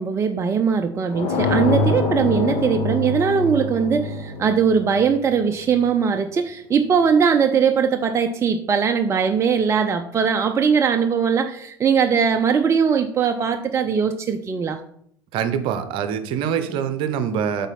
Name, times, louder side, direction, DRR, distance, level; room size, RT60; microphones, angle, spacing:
voice 1, 0.0-14.8, right 6 dB, 25° right, 7 dB, 0.5 m, -20 dB
sound 1, 1.1-5.8, left 3 dB, 45° left, 1.9 m, -25 dB
voice 2, 15.3-17.7, right 8 dB, 50° right, 11 dB, 0.8 m, -24 dB
8.1 x 4.0 x 5.5 m, 0.68 s
figure-of-eight pair, 70°, 11 cm